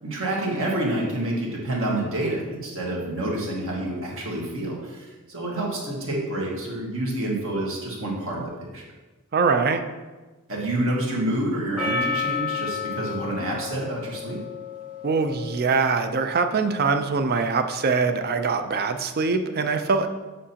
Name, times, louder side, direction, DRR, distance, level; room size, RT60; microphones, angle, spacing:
voice 1, 0.0-8.8 10.5-14.4, right 1 dB, 65° right, -3 dB, 1.6 m, -28 dB
voice 2, 9.3-9.8 15.0-20.1, right 4 dB, 45° right, 8 dB, 0.5 m, -23 dB
Percussion, 11.8-16.3, left 5 dB, 5° right, 0.8 m, -31 dB
7.3 x 5.6 x 2.9 m, 1.2 s
head